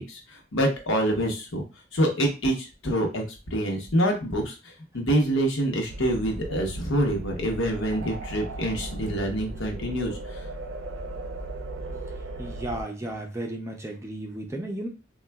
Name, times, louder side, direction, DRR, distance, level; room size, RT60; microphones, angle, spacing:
voice 1, 0.1-1.6 1.9-10.4, right 1 dB, 90° left, 2 dB, 0.8 m, -26 dB
sound 1, 5.9-12.8, right 2 dB, 80° right, 0.5 m, -37 dB
voice 2, 12.4-14.9, right 1 dB, 15° right, 2 dB, 0.4 m, -34 dB
3.7 x 2.3 x 2.2 m, 0.30 s
head